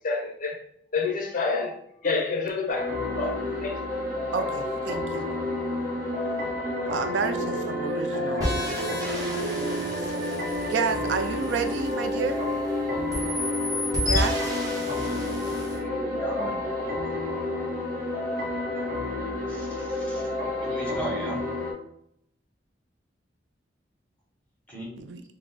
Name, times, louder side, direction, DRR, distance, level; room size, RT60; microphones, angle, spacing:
voice 1, 0.0-0.6 0.9-3.8, left 4 dB, 45° left, 3 dB, 0.5 m, -29 dB
sound 1, 2.7-21.7, left 1 dB, 45° right, 0.8 m, -30 dB
voice 2, 4.3-5.3 6.9-10.3 10.7-12.4 14.1-14.4 25.0-25.2, right 5 dB, 75° right, 7 dB, 0.4 m, -31 dB
sound 2, 8.4-12.7 13.1-15.8, equal, 20° right, 1.0 m, -32 dB
voice 3, 15.6-16.6 19.5-20.3 20.6-21.4 24.7-24.9, equal, 10° left, -3 dB, 1.0 m, -36 dB
3.4 x 2.1 x 3.8 m, 0.71 s
head